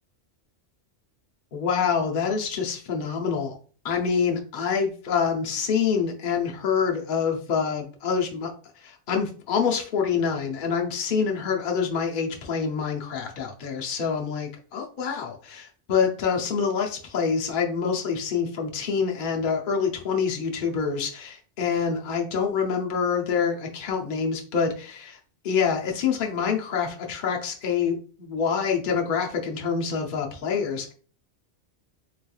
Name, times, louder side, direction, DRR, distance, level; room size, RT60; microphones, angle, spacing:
voice 1, 1.5-3.5 3.8-8.5 8.8-25.2 25.4-30.9, left 6 dB, 50° left, 0 dB, 0.8 m, -26 dB
3.9 x 3.2 x 2.2 m, 0.40 s
omnidirectional pair, 1.2 m